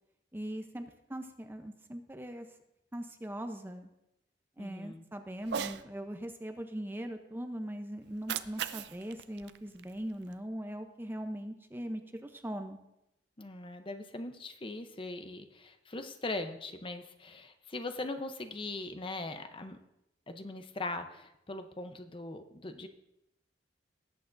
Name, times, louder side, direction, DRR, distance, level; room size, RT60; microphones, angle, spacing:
voice 1, 0.3-2.5 2.9-3.9 4.6-12.8, equal, 10° right, 6 dB, 0.6 m, -40 dB
voice 2, 4.6-5.0 13.4-19.8 20.3-22.9, left 2 dB, 30° left, 7 dB, 0.7 m, -40 dB
Cat, 5.4-5.8 8.0-10.4, right 8 dB, 65° right, 0.4 m, -39 dB
19.0 x 8.4 x 2.6 m, 0.86 s
head